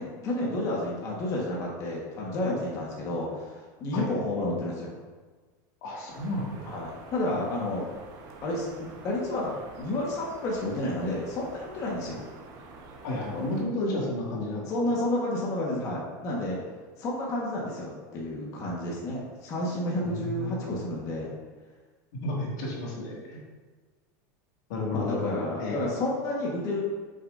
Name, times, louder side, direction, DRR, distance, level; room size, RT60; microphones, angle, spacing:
voice 1, 0.0-4.9 6.6-7.9 8.4-12.2 14.7-16.6 17.0-21.3 24.9-26.8, left 1 dB, 35° left, -4 dB, 1.6 m, -31 dB
voice 2, 5.8-6.8 13.0-14.9 20.0-20.7 22.2-23.4 24.7-25.8, left 2 dB, 70° left, -3 dB, 2.3 m, -32 dB
sound 1, 6.1-13.6, right 3 dB, 40° right, 1.3 m, -47 dB
8.6 x 6.7 x 2.7 m, 1.4 s
supercardioid pair, 140°, 10 cm